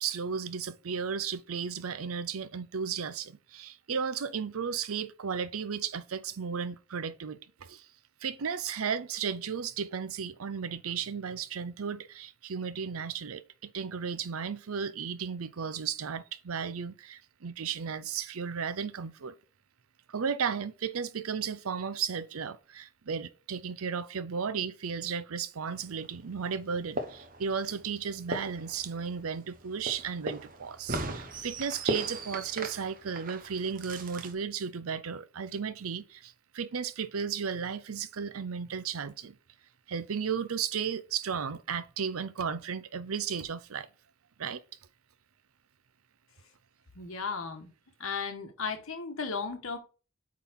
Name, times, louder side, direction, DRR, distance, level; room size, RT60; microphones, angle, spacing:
voice 1, 0.0-7.9 8.2-19.3 20.1-39.4 39.9-43.9 44.4-44.6, right 6 dB, 90° right, 0.6 m, -34 dB
sound 1, 25.7-34.3, right 2 dB, 40° right, 0.9 m, -39 dB
voice 2, 46.9-47.7 48.0-49.8, left 5 dB, 80° left, 1.4 m, -35 dB
8.3 x 3.9 x 3.7 m
head